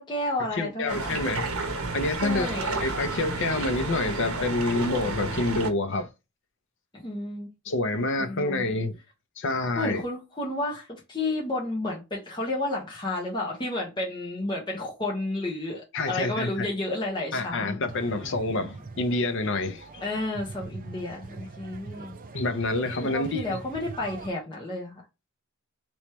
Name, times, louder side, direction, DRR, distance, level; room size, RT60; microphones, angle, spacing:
voice 1, 0.0-1.1 2.2-2.8 6.9-7.5 7.9-8.6 9.8-17.8 20.0-22.2 23.0-25.0, left 2 dB, 20° left, 1.1 m, -31 dB
voice 2, 0.5-1.5 1.9-6.1 7.6-9.0 9.4-10.0 15.9-16.7 17.3-20.0 22.3-23.6, left 2 dB, 60° left, 0.6 m, -28 dB
sound 1, 0.9-5.7, right 3 dB, 65° right, 1.0 m, -31 dB
sound 2, 17.9-24.3, right 3 dB, 40° right, 0.5 m, -42 dB
3.1 x 3.0 x 3.1 m
head